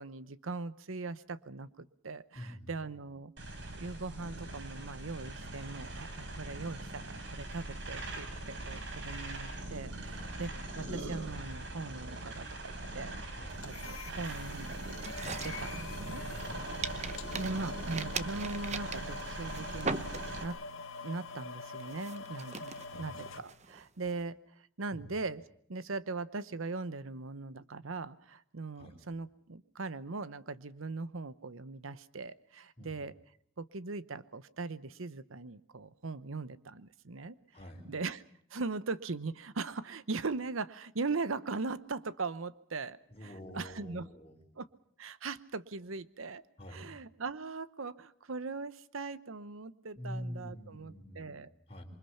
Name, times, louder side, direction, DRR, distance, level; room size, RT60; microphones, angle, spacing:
voice 1, 0.0-3.3 3.8-13.1 13.6-15.0 15.4-16.2 17.4-20.6 21.0-24.4 24.8-25.4 25.7-33.1 33.6-37.4 37.9-38.2 38.5-44.1 44.6-44.7 45.0-46.4 46.7-51.5, right 3 dB, 90° right, 15 dB, 0.9 m, -40 dB
voice 2, 2.3-2.7 10.1-10.4 13.3-13.7 16.5-16.6 22.9-23.2 24.9-25.1 28.7-29.0 32.8-33.0 37.5-37.9 43.1-44.4 46.6-46.9 49.9-51.4 51.7-51.8, equal, 30° left, 0 dB, 4.7 m, -46 dB
sound 1, 3.4-20.4, right 2 dB, 60° right, 3.8 m, -41 dB
sound 2, 13.6-23.4, left 4 dB, 80° left, 1.8 m, -45 dB
sound 3, 15.0-16.5 16.8-20.6 21.0-21.3 21.8-24.1, right 4 dB, 35° right, 0.9 m, -40 dB
27.0 x 24.0 x 5.7 m, 0.65 s
head